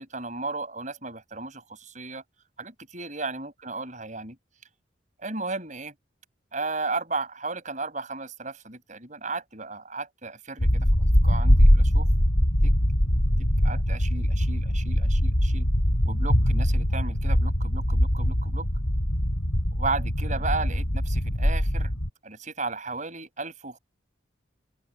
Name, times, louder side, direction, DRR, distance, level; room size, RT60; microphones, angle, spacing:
voice 1, 0.0-2.2 2.6-4.4 5.2-5.9 6.5-12.1 12.6-12.7 13.6-15.7 16.0-18.7 19.7-21.9 22.2-23.8, right 3 dB, 40° right, 7.3 m, -34 dB
sound 1, 10.6-22.1, equal, 70° left, 6.2 m, -22 dB
open air
head